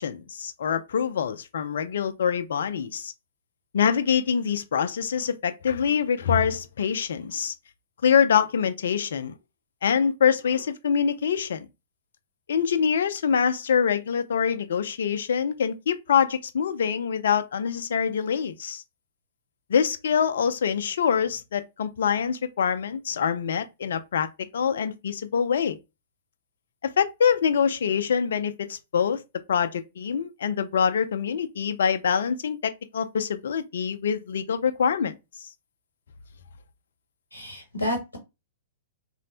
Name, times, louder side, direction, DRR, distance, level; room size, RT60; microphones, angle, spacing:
voice 1, 0.0-3.1 3.7-7.5 8.0-9.3 9.8-11.7 12.5-18.8 19.7-24.3 24.5-25.8 26.8-29.2 29.5-35.2, left 7 dB, 60° left, 0.4 m, -25 dB
voice 2, 37.3-38.2, left 1 dB, 90° left, 0.8 m, -30 dB
3.2 x 2.1 x 2.8 m
figure-of-eight pair, 110°, 0 cm